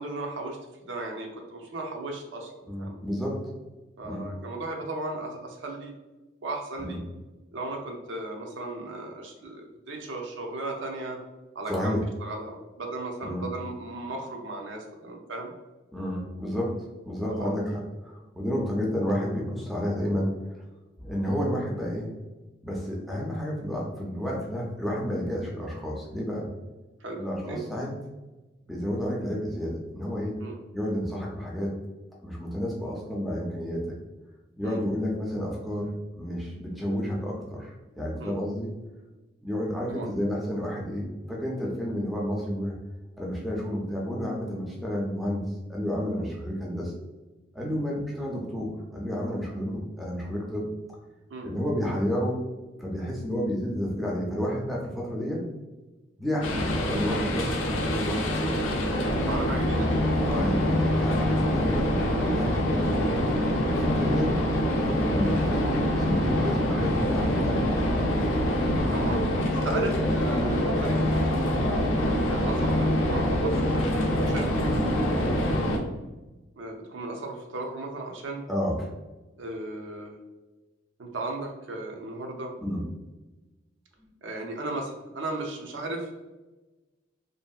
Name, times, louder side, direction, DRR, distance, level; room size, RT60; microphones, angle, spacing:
voice 1, 0.0-3.0 4.0-5.9 6.4-7.0 7.5-11.2 11.5-15.5 17.3-17.6 27.0-27.6 30.4-30.6 34.6-34.8 38.2-38.4 39.9-40.1 51.3-51.5 59.0-59.9 68.9-69.2 69.6-71.3 72.0-74.5 76.5-78.4 79.4-80.2 81.0-82.5 84.2-86.1, right 2 dB, 70° right, 1 dB, 0.5 m, -36 dB
voice 2, 2.7-3.4 4.0-4.3 6.8-7.0 11.7-12.0 13.2-13.5 15.9-20.7 21.0-22.1 22.6-26.5 27.2-27.9 28.7-30.4 30.7-31.8 32.2-34.0 34.6-38.7 39.4-42.8 43.2-45.4 45.7-46.9 47.5-50.7 51.4-52.4 52.8-55.4 56.2-58.6 60.3-62.9 63.6-64.3 64.8-67.9 78.5-78.9 82.6-82.8, equal, ahead, -4 dB, 0.4 m, -31 dB
sound 1, 56.4-75.8, left 1 dB, 85° left, 0.5 m, -25 dB
2.6 x 2.5 x 2.3 m, 1.1 s
head